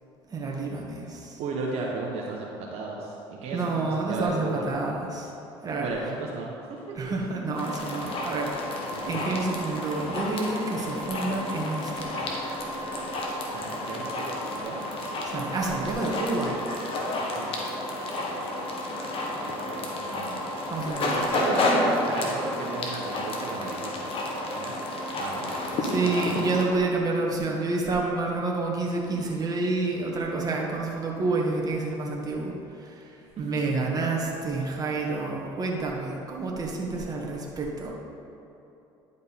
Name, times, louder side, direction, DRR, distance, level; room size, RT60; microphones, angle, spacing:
voice 1, 0.3-1.4 3.5-5.3 5.6-5.9 6.9-8.5 9.0-12.4 15.2-16.6 20.7-21.4 25.5-37.9, right 3 dB, 35° right, -2 dB, 1.7 m, -29 dB
voice 2, 1.4-4.7 5.8-7.0 13.5-14.8 15.8-16.3 17.3-17.5 19.6-20.4 21.0-24.1 24.5-24.7 25.2-25.6, right 3 dB, 65° right, -3 dB, 1.2 m, -35 dB
sound 1, 7.5-26.6, left 1 dB, 55° left, 1.5 m, -30 dB
10.5 x 5.2 x 4.2 m, 2.9 s
supercardioid pair, 80°, 11 cm